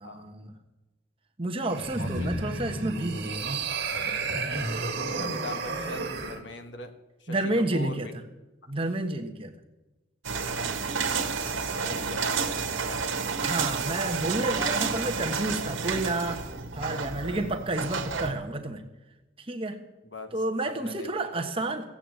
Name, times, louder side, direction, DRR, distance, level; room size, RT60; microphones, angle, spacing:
voice 1, 0.0-0.5 1.4-3.7 7.3-8.1 8.7-9.5 13.4-16.4 16.7-18.8 19.4-19.8 20.3-21.9, right 2 dB, 30° right, 4 dB, 1.2 m, -30 dB
sound 1, 1.6-6.4, right 3 dB, 55° right, 2.0 m, -31 dB
voice 2, 2.0-2.5 4.9-8.1 10.8-13.4 20.0-20.3 20.6-21.5, left 2 dB, 65° left, 7 dB, 1.4 m, -42 dB
sound 2, 10.2-18.3, right 5 dB, 85° right, 1.5 m, -30 dB
16.0 x 8.9 x 7.7 m, 1.1 s
head